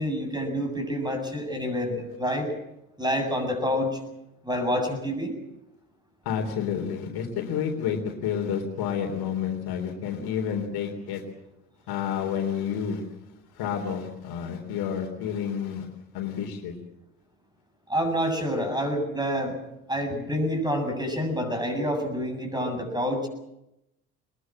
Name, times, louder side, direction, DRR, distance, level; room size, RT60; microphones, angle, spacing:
voice 1, 0.0-2.5 3.0-4.0 4.4-5.4 17.9-19.6 19.9-23.3, equal, 10° right, 5 dB, 7.7 m, -27 dB
voice 2, 6.3-11.2 11.9-13.0 13.5-15.9 16.1-16.7, left 8 dB, 55° left, 4 dB, 3.7 m, -30 dB
22.0 x 21.0 x 7.6 m, 0.88 s
hypercardioid pair, 65°, 44 cm